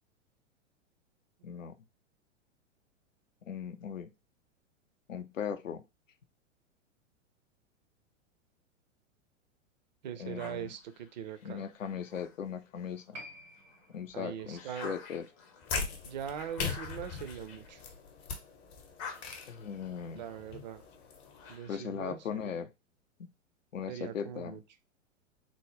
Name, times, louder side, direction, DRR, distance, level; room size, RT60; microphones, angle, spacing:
voice 1, 1.4-1.7 3.5-4.1 5.1-5.8 10.2-10.7 11.4-13.2 13.9-15.3 19.5-20.2 21.7-22.7 23.7-24.6, left 7 dB, 75° left, 0.5 m, -38 dB
voice 2, 10.0-11.6 14.1-15.0 16.0-17.8 20.1-20.9 21.5-22.4 23.9-24.6, right 9 dB, 35° right, 0.4 m, -41 dB
sound 1, 10.4-13.1 13.6-18.4 18.7-22.0, left 5 dB, 25° left, 0.5 m, -50 dB
Piano, 13.1-20.1 20.3-20.4, equal, 80° right, 0.8 m, -55 dB
sound 2, 15.6-21.6, left 5 dB, 55° left, 0.8 m, -40 dB
3.5 x 2.0 x 3.2 m
figure-of-eight pair, 100°, 38 cm